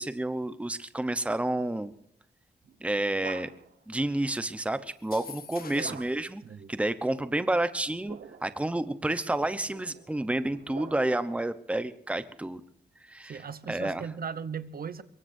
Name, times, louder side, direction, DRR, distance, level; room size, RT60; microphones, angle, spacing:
voice 1, 0.0-1.9 2.8-3.5 3.9-6.4 6.7-12.6 13.1-14.1, right 1 dB, 5° right, 0.8 m, -30 dB
sound 1, 2.6-3.8 5.8-6.4 7.8-8.6 9.4-11.3, right 6 dB, 80° right, 1.2 m, -47 dB
sound 2, 5.0-6.2, left 6 dB, 60° left, 1.9 m, -45 dB
voice 2, 6.4-6.7 13.2-15.0, right 6 dB, 60° right, 0.9 m, -38 dB
24.0 x 22.5 x 2.7 m
wide cardioid pair, 140°, 17 cm